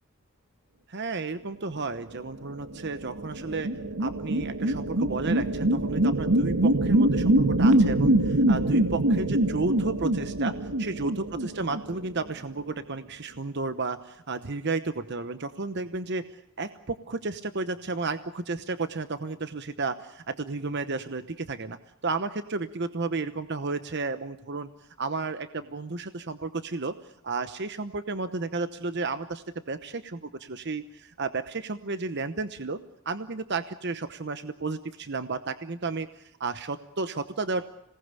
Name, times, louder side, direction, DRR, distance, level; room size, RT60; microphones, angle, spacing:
voice 1, 0.9-3.7 4.0-16.3 16.6-24.7 25.0-26.9 27.2-32.8 33.0-37.6, right 3 dB, 50° right, 11 dB, 1.0 m, -32 dB
sound 1, 2.5-12.3, right 1 dB, 80° right, 1.8 m, -24 dB
26.5 x 19.0 x 8.3 m, 0.78 s
head